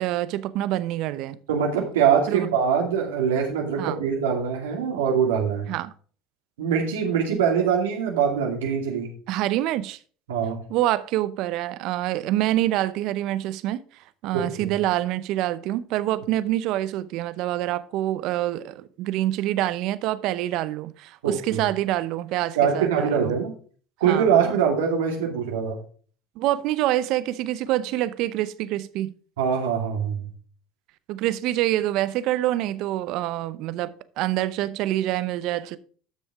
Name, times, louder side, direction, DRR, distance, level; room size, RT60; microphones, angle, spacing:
voice 1, 0.0-1.4 2.3-2.5 3.8-4.0 5.7-5.9 9.3-10.0 10.7-13.8 14.2-23.4 24.0-24.5 26.4-29.1 31.1-35.8, right 14 dB, 60° right, 0.7 m, -26 dB
voice 2, 1.5-5.7 6.6-9.1 10.3-10.6 14.3-14.7 21.2-21.6 22.6-23.5 24.0-25.8 29.4-30.3, right 7 dB, 85° right, 2.5 m, -23 dB
12.0 x 6.3 x 3.6 m
hypercardioid pair, 85°, 0 cm